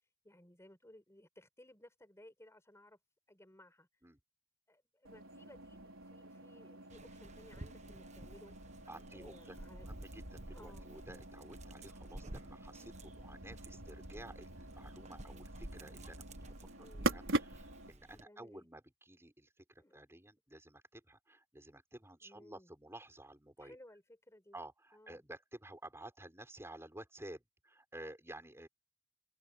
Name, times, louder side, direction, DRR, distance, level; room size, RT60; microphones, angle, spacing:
voice 1, 0.2-3.0 3.3-3.9 4.7-8.6 9.1-9.9 10.5-10.9 16.7-17.1 18.2-18.7 19.8-20.0 22.2-22.7 23.6-24.6 24.9-25.2, left 1 dB, 15° left, 4.4 m, -59 dB
sound 1, 5.0-17.9, right 2 dB, 90° right, 4.5 m, -44 dB
Dog, 6.9-18.2, right 1 dB, 35° right, 1.3 m, -52 dB
voice 2, 8.9-23.8 24.5-28.7, right 1 dB, 15° right, 5.8 m, -53 dB
head